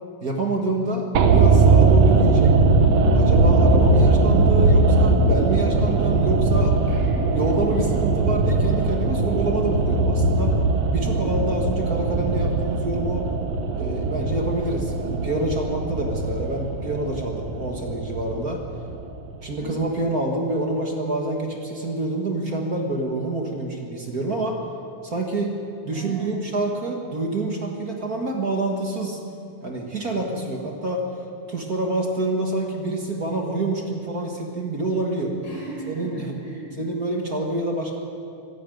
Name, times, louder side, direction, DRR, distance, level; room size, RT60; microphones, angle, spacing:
voice 1, 0.2-2.5 3.1-6.7 7.3-10.6 10.9-13.3 13.7-18.6 19.4-24.6 25.0-25.5 25.8-29.2 29.6-31.1 31.5-35.4 35.9-36.4 36.8-38.0, right 2 dB, 35° right, 1 dB, 1.9 m, -27 dB
sound 1, 1.2-19.4 19.6-19.7, right 3 dB, 60° right, 2.3 m, -20 dB
voice 2, 6.9-7.9 19.6-19.7 25.9-26.4 35.4-36.8, right 1 dB, 85° left, -4 dB, 7.4 m, -38 dB
25.0 x 11.5 x 9.2 m, 2.6 s
omnidirectional pair, 3.5 m